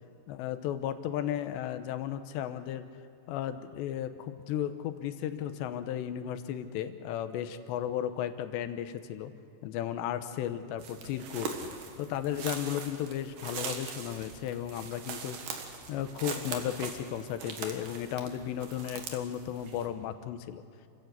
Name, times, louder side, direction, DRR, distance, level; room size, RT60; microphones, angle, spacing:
voice 1, 0.3-2.9 3.3-9.3 9.6-15.4 15.9-20.6, left 10 dB, 80° left, 10 dB, 3.1 m, -35 dB
sound 1, 10.8-19.9, right 5 dB, 60° right, 2.9 m, -41 dB
29.0 x 15.5 x 8.1 m, 2.5 s
omnidirectional pair, 5.1 m